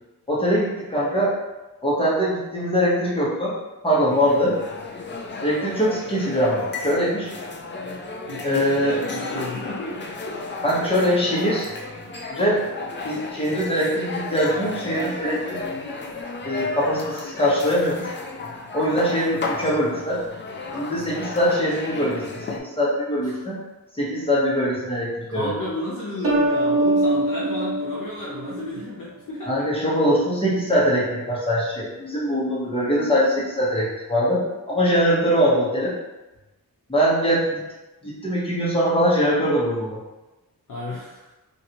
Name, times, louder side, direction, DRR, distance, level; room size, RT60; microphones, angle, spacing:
voice 1, 0.3-1.3 1.8-3.5 3.8-4.6 5.4-7.3 8.4-9.0 10.6-11.7 12.3-12.6 13.0-15.6 16.4-18.1 18.7-20.2 20.7-23.6 24.0-25.6 29.4-35.9 36.9-37.6 38.0-40.0, equal, 15° left, -7 dB, 1.0 m, -22 dB
sound 1, 4.1-22.6, left 3 dB, 35° left, 0.4 m, -33 dB
voice 2, 8.3-10.4 23.3-23.4 25.3-29.5 40.7-41.2, left 1 dB, 60° left, -6 dB, 0.7 m, -32 dB
sound 2, 26.2-28.9, right 1 dB, 40° right, 0.7 m, -23 dB
3.1 x 2.5 x 2.8 m, 1.1 s
wide cardioid pair, 110°, 36 cm